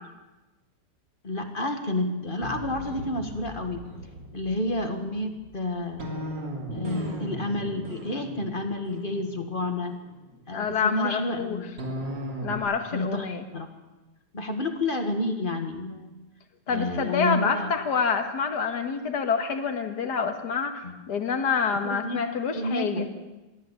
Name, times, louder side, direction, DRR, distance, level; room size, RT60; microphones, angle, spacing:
voice 1, 1.2-3.8 4.3-6.2 6.7-10.0 10.5-11.7 12.9-13.3 13.5-13.7 14.3-16.1 16.7-17.7 20.8-21.0 21.8-22.2 22.5-23.1, left 1 dB, 30° left, 6 dB, 2.0 m, -30 dB
sound 1, 2.4-10.7 11.8-12.6, equal, 80° right, 3.6 m, -37 dB
voice 2, 10.5-11.6 12.4-13.4 16.7-20.7 21.1-23.1, left 6 dB, 65° left, 6 dB, 2.3 m, -27 dB
22.5 x 14.5 x 8.5 m, 1.1 s
omnidirectional pair, 1.9 m